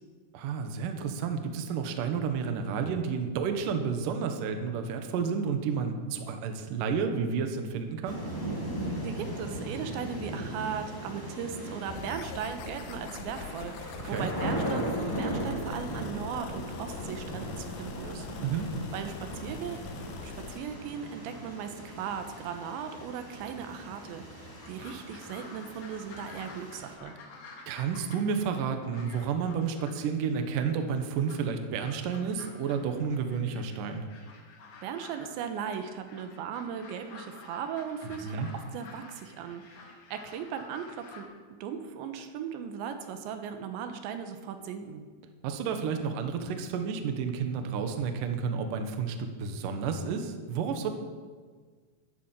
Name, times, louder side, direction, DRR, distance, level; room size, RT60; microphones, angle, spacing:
voice 1, 0.3-8.2 14.0-14.3 18.4-18.7 27.7-34.0 38.2-38.5 45.4-50.9, right 6 dB, 65° right, 6 dB, 2.3 m, -31 dB
sound 1, 8.0-26.9, right 1 dB, 25° left, 0.4 m, -38 dB
voice 2, 9.0-18.3 18.9-19.8 20.2-24.2 24.7-27.2 34.8-39.8 40.1-41.3 41.6-45.1, right 7 dB, 85° right, 7 dB, 3.4 m, -38 dB
sound 2, 11.9-20.6, left 6 dB, 75° left, 2.6 m, -43 dB
sound 3, 24.6-41.2, left 3 dB, 55° left, 3.3 m, -51 dB
12.0 x 11.0 x 7.5 m, 1.5 s
omnidirectional pair, 5.1 m